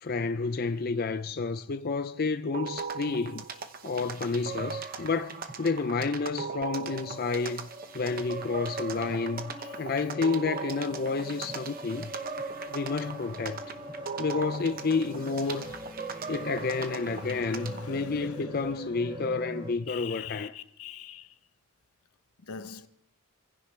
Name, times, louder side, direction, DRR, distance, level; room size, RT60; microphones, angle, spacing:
voice 1, 0.0-3.4 3.8-7.7 7.9-9.5 9.8-12.1 12.7-13.6 14.2-15.7 16.3-20.5, left 4 dB, 40° left, 0.5 m, -30 dB
sound 1, 2.5-17.9, right 5 dB, 40° right, 1.0 m, -39 dB
sound 2, 5.4-19.7, equal, 20° right, 2.4 m, -43 dB
voice 2, 16.0-18.5 19.9-21.3 22.4-22.9, left 7 dB, 80° left, 0.9 m, -45 dB
27.5 x 15.5 x 3.3 m
head